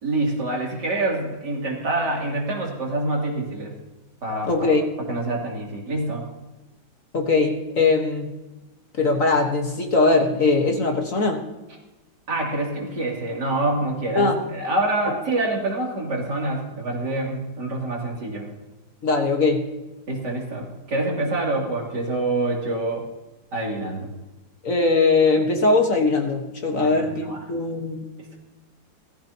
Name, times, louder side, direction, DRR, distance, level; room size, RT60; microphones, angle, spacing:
voice 1, 0.0-3.7 4.2-4.7 5.1-6.3 12.3-18.5 20.1-23.0 23.5-24.1 26.8-27.4, right 2 dB, 65° right, -2 dB, 3.5 m, -26 dB
voice 2, 4.4-4.8 7.1-8.3 9.0-11.4 14.1-14.4 15.1-15.2 19.0-19.6 24.6-28.0, left 3 dB, 50° left, 3 dB, 1.7 m, -20 dB
17.5 x 14.5 x 2.9 m, 1.1 s
omnidirectional pair, 2.0 m